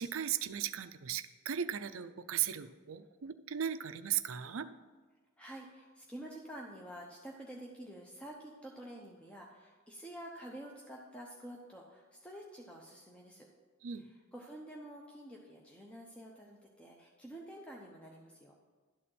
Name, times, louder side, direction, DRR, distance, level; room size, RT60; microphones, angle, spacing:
voice 1, 0.0-4.7 13.8-14.1, right 9 dB, 70° right, 11 dB, 0.5 m, -37 dB
voice 2, 5.4-13.5 14.0-18.5, right 1 dB, 5° left, -2 dB, 0.7 m, -49 dB
12.0 x 4.2 x 7.7 m, 1.4 s
head